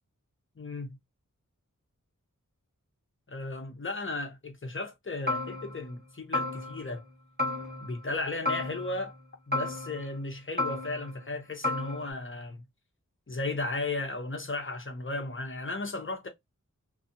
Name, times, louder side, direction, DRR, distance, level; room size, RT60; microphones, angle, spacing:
voice 1, 0.6-1.0 3.3-7.1 7.8-9.1 9.5-12.6 13.3-16.3, left 2 dB, 40° left, 0.7 m, -35 dB
sound 1, 5.3-6.0 6.3-7.1 7.4-8.1 8.5-9.2 9.5-10.3 10.6-11.3 11.6-12.1, left 2 dB, 30° right, 1.3 m, -33 dB
2.6 x 2.3 x 2.6 m
wide cardioid pair, 50°, 32 cm